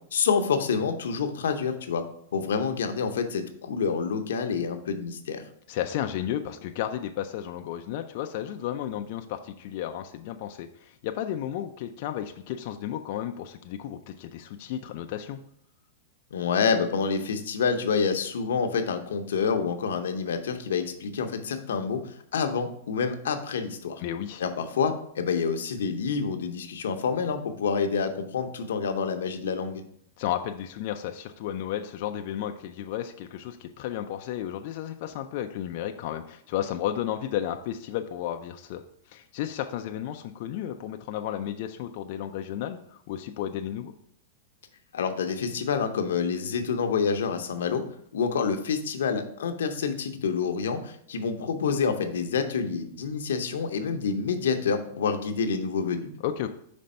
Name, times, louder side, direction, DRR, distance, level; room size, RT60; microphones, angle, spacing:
voice 1, 0.1-2.0 2.3-5.4 16.3-24.0 24.4-29.8 44.9-47.8 48.1-56.1, left 5 dB, 85° left, 7 dB, 0.7 m, -27 dB
voice 2, 5.7-15.4 24.0-24.4 30.2-38.8 39.1-43.9 56.2-56.5, left 11 dB, 50° left, 6 dB, 0.4 m, -33 dB
5.2 x 3.4 x 5.4 m, 0.67 s
hypercardioid pair, 145°, 0 cm